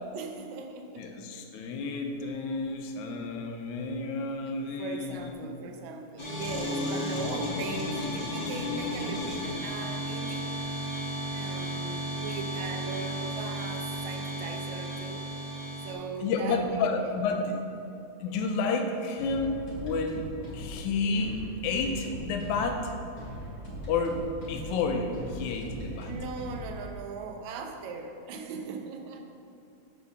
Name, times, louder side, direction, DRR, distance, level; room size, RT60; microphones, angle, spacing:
voice 1, 0.1-1.1 4.8-10.5 11.3-15.3 15.8-17.2 25.9-29.2, right 4 dB, 80° right, 4 dB, 2.1 m, -39 dB
voice 2, 1.0-5.3 6.6-7.3 14.4-14.5 16.2-17.5 18.2-22.9 23.9-26.1, left 3 dB, 90° left, 4 dB, 2.2 m, -31 dB
sound 1, 6.2-15.9, equal, 20° left, 1.3 m, -34 dB
sound 2, 19.1-26.9, equal, 40° left, 2.8 m, -40 dB
8.3 x 4.7 x 6.6 m, 2.7 s
omnidirectional pair, 3.3 m